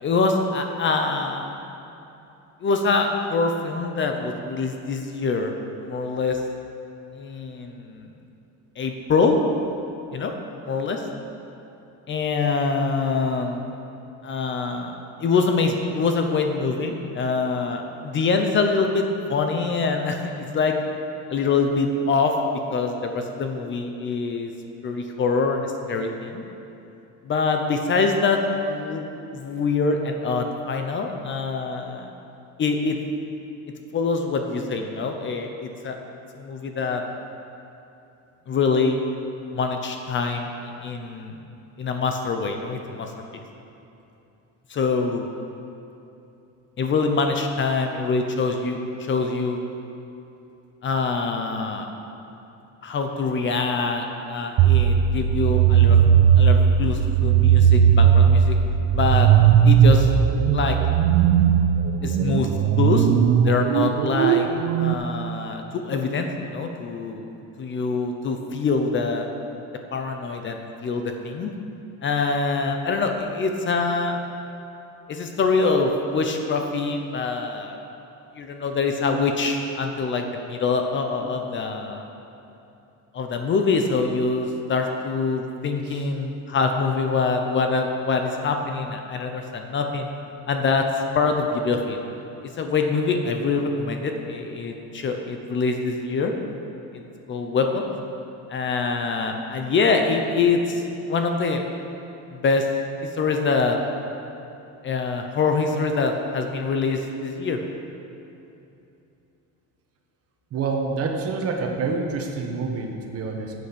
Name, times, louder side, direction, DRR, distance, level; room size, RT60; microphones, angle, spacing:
voice 1, 0.0-1.5 2.6-5.5 5.8-6.4 7.1-8.1 8.8-9.6 10.1-10.4 10.6-11.0 12.1-13.6 14.2-20.7 21.3-22.3 22.7-24.5 24.8-26.4 27.2-29.1 29.3-32.1 32.6-33.0 33.9-36.0 36.3-37.0 38.5-39.0 39.5-41.4 41.8-43.1 44.7-45.3 46.8-49.6 50.8-51.9 52.8-56.0 56.4-58.6 58.9-59.3 59.6-60.1 60.5-60.8 62.0-62.5 62.8-63.1 63.4-64.5 64.8-67.3 67.6-69.3 69.9-71.5 72.0-74.2 75.1-77.8 78.4-82.0 83.1-90.1 90.5-90.9 91.1-92.0 92.6-96.3 97.3-97.9 98.5-101.6 102.3-102.7 103.2-103.8 104.8-107.6, left 4 dB, 35° left, 4 dB, 0.8 m, -24 dB
sound 1, 54.6-64.9, right 8 dB, 65° right, 0.6 m, -17 dB
voice 2, 110.5-113.5, right 4 dB, 45° right, 2 dB, 1.4 m, -27 dB
10.0 x 8.1 x 6.9 m, 2.8 s
cardioid pair, 160°, 33 cm